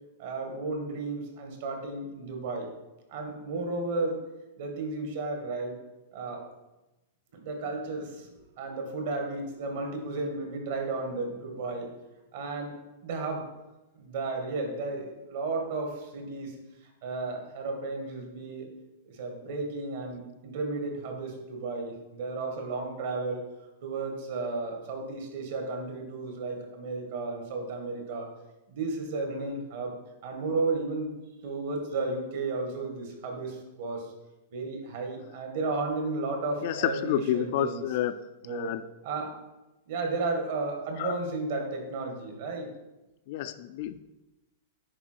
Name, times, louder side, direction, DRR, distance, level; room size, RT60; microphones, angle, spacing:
voice 1, 0.2-2.7 3.1-4.2 4.6-5.8 6.1-6.4 7.3-11.9 12.3-12.7 13.0-13.4 14.0-16.5 17.0-18.7 19.1-23.5 23.8-28.3 28.7-29.9 30.2-31.1 31.4-34.1 34.5-37.8 38.4-38.7 39.0-39.3 39.9-42.7, right 3 dB, 55° right, 3 dB, 1.8 m, -33 dB
voice 2, 36.6-38.2 38.5-38.8 41.0-41.2 43.3-44.0, left 11 dB, 45° left, 11 dB, 0.3 m, -29 dB
9.9 x 4.4 x 4.5 m, 1.0 s
supercardioid pair, 170°, 0 cm